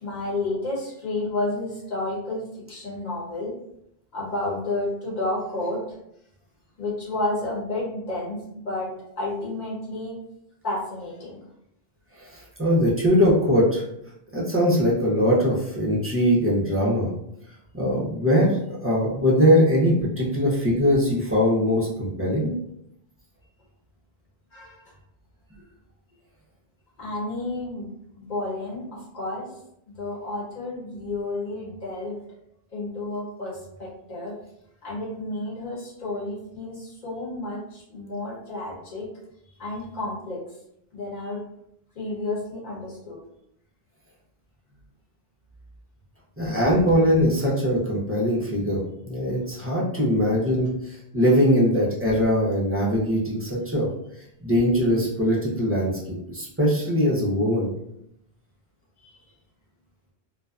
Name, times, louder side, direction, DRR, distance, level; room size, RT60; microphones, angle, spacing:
voice 1, 0.0-2.4 2.7-3.5 4.1-6.0 6.8-8.4 8.6-10.2 10.6-11.4 24.5-24.8 25.6-25.7 27.0-29.5 30.0-32.2 32.7-34.3 34.8-39.1 39.6-40.4 40.9-41.4 41.9-43.2 59.0-59.2, left 2 dB, 45° left, -6 dB, 1.1 m, -31 dB
voice 2, 12.2-13.8 14.3-17.1 17.7-22.5 46.4-48.8 49.1-53.9 54.4-57.7, equal, 20° right, -6 dB, 0.4 m, -21 dB
2.5 x 2.2 x 2.3 m, 0.77 s
omnidirectional pair, 1.0 m